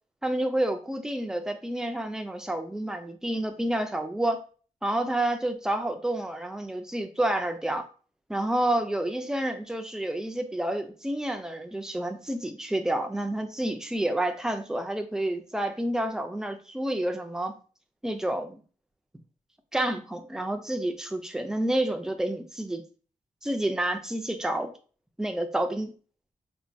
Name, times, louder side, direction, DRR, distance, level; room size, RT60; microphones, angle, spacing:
voice 1, 0.2-4.4 4.8-7.8 8.3-17.5 18.0-18.6 19.7-22.8 23.4-24.7 25.2-25.9, right 1 dB, 5° right, 6 dB, 0.4 m, -29 dB
4.3 x 2.2 x 2.6 m, 0.38 s
wide cardioid pair, 140°, 14 cm